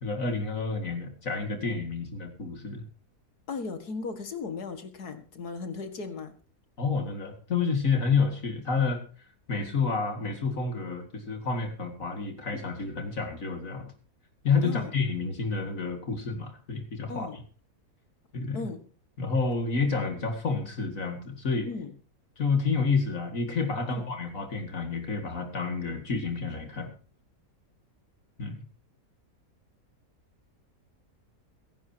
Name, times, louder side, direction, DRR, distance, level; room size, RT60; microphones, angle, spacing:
voice 1, 0.0-2.8 6.8-9.0 9.5-13.9 14.4-17.3 18.3-18.7 19.2-21.7 22.4-26.9 28.4-28.6, left 4 dB, 60° left, 4 dB, 2.6 m, -29 dB
voice 2, 3.5-6.3 14.6-14.9 17.1-17.4 18.5-18.8 21.7-21.9 23.9-24.0, left 4 dB, 85° left, 8 dB, 2.3 m, -36 dB
22.0 x 11.0 x 2.9 m, 0.42 s
omnidirectional pair, 1.6 m